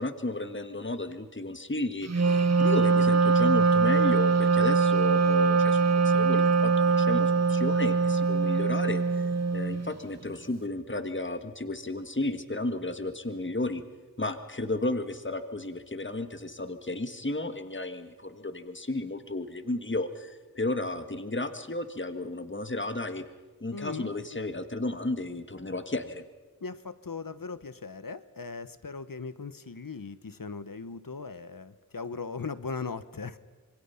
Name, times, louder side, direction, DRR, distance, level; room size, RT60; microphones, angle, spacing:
voice 1, 0.0-13.8 14.2-23.2 23.6-26.2, left 2 dB, 30° left, 8 dB, 1.6 m, -33 dB
Wind instrument woodwind instrument, 2.1-9.9, right 4 dB, 45° right, 0.8 m, -23 dB
voice 2, 23.7-24.1 26.6-33.4, left 4 dB, 65° left, 13 dB, 1.1 m, -38 dB
26.5 x 22.5 x 5.8 m, 1.3 s
wide cardioid pair, 45°, 36 cm